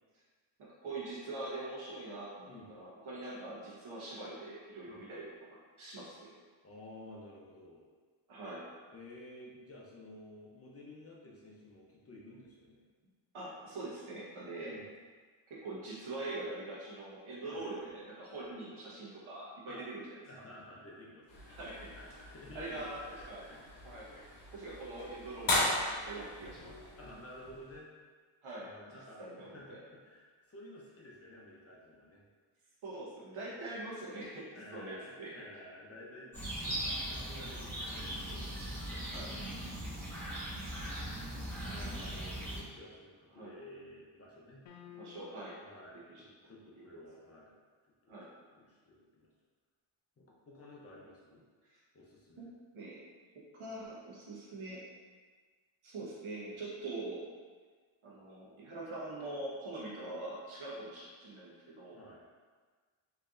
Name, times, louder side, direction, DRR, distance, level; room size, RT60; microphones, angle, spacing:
voice 1, 0.6-5.5 5.8-6.3 8.3-8.6 13.3-14.8 15.5-20.2 21.5-21.9 22.5-23.0 23.3-23.4 23.8-26.9 28.4-28.7 29.2-29.8 32.8-35.3 39.1-39.3 43.3-43.5 45.0-45.6 46.1-46.2 48.1-48.3 51.6-51.8 52.4-52.5 52.7-53.0 53.5-54.8 55.8-57.3 58.0-62.0, right 2 dB, 80° right, -6 dB, 1.3 m, -43 dB
voice 2, 2.5-2.8 4.9-5.0 6.6-7.8 8.9-12.8 14.7-14.9 17.5-17.6 19.7-19.8 20.3-21.5 22.0-23.6 26.9-27.9 28.6-32.2 34.5-39.4 41.0-44.6 45.6-47.5 48.0-49.3 50.2-51.4 51.9-52.5 61.9-62.2, left 1 dB, 30° left, -4 dB, 0.7 m, -53 dB
sound 1, 21.3-27.8, left 2 dB, 60° left, 1.0 m, -38 dB
sound 2, 36.3-42.6, right 1 dB, 5° left, 1.4 m, -39 dB
sound 3, 44.7-45.7, left 9 dB, 75° left, 0.6 m, -53 dB
4.0 x 3.2 x 2.5 m, 1.5 s
cardioid pair, 110°, 49 cm